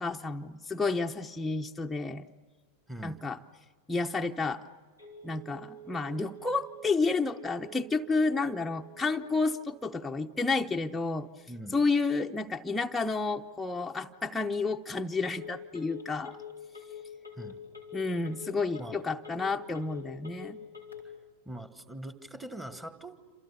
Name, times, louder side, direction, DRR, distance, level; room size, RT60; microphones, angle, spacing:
voice 1, 0.0-2.3 3.0-3.4 3.9-4.6 5.2-11.3 11.7-16.4 17.9-20.6, left 3 dB, 10° left, 2 dB, 0.7 m, -30 dB
voice 2, 2.9-3.2 11.5-11.8 17.3-17.6 18.8-19.0 21.0-21.2 21.4-23.2, right 1 dB, 10° right, 10 dB, 1.6 m, -42 dB
Telephone, 5.0-21.0, left 2 dB, 90° right, 4.2 m, -49 dB
28.5 x 27.0 x 6.9 m, 1.5 s
figure-of-eight pair, 90°, 0 cm